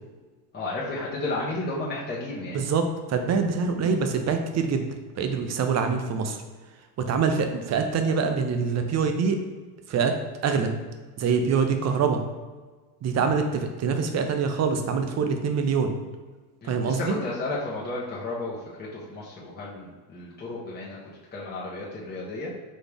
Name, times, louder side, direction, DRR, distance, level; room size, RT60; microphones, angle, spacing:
voice 1, 0.5-2.6 3.8-3.9 5.7-5.9 13.2-13.3 16.6-21.0 21.3-22.5, left 2 dB, 25° left, -7 dB, 1.0 m, -33 dB
voice 2, 2.5-4.9 5.2-6.4 7.0-9.4 9.9-10.1 10.4-10.7 11.2-12.2 13.0-15.9 16.6-17.2, right 5 dB, 40° right, 6 dB, 0.6 m, -25 dB
4.2 x 3.3 x 3.4 m, 1.4 s
cardioid pair, 110°, 42 cm